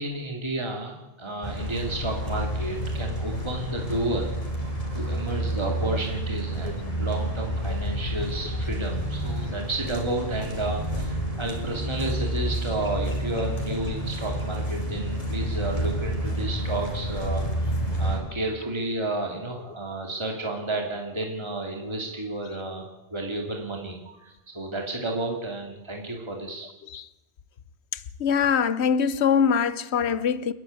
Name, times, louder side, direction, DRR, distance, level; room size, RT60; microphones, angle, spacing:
voice 1, 0.0-4.3 4.9-17.7 18.0-26.7, right 2 dB, 25° right, 2.6 m, -31 dB
sound 1, 1.4-18.2, right 1 dB, 35° left, 4.0 m, -29 dB
voice 2, 28.2-30.5, left 7 dB, 85° left, 1.2 m, -23 dB
29.5 x 10.5 x 9.4 m
omnidirectional pair, 1.1 m